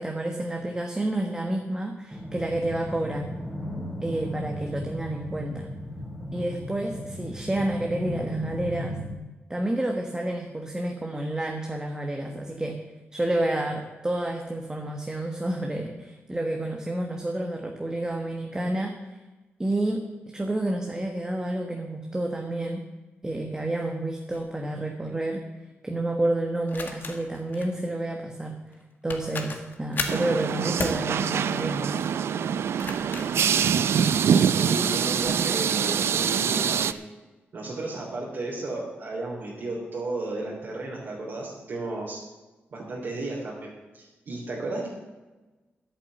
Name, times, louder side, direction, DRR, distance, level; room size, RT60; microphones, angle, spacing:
voice 1, 0.0-3.3 4.0-5.7 6.3-9.0 9.5-12.8 13.1-18.9 19.6-22.8 23.2-25.4 25.8-28.6 29.0-32.0, right 1 dB, 15° right, 2 dB, 1.3 m, -29 dB
sound 1, 2.1-9.2, equal, ahead, 2.9 m, -36 dB
sound 2, 24.3-24.5 26.7-27.7 28.7-28.8 29.1-30.3 30.8-31.0 32.6-34.4 35.0-35.4, left 4 dB, 50° left, 1.7 m, -36 dB
sound 3, 30.1-36.9, right 7 dB, 80° right, 0.5 m, -24 dB
voice 2, 34.4-37.0 37.5-42.2 42.7-44.9, right 2 dB, 55° right, -4 dB, 3.3 m, -34 dB
11.0 x 9.0 x 7.8 m, 1.2 s
wide cardioid pair, 130°, 4 cm